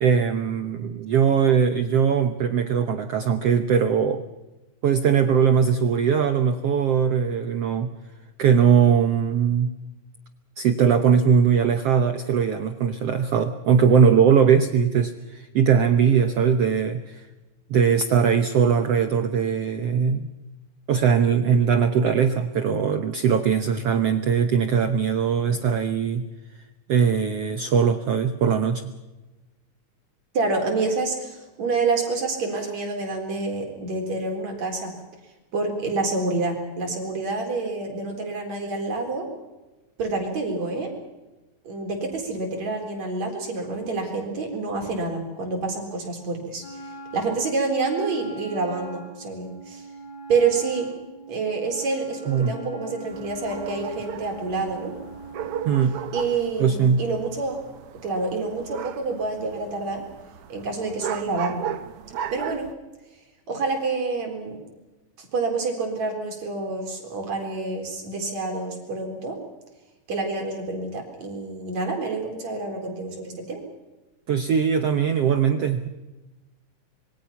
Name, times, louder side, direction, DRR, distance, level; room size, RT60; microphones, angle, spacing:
voice 1, 0.0-4.2 4.8-7.9 8.4-9.7 10.6-17.2 17.7-20.3 20.9-26.3 26.9-28.9 52.3-52.5 55.6-56.0 56.6-57.0 74.3-75.9, right 7 dB, 70° right, 8 dB, 1.5 m, -20 dB
voice 2, 30.3-34.9 35.5-39.3 40.0-40.9 41.6-49.9 50.3-50.9 51.3-54.9 56.1-57.6 58.0-60.0 60.5-61.7 62.3-62.7 63.5-64.6 65.2-69.4 70.1-73.6, right 3 dB, 50° right, 2 dB, 5.2 m, -27 dB
Wind instrument woodwind instrument, 46.6-56.2, right 1 dB, 30° left, 6.9 m, -41 dB
sound 1, 53.1-62.7, right 9 dB, 85° right, 1.2 m, -36 dB
26.5 x 22.5 x 5.8 m, 1.1 s
omnidirectional pair, 4.0 m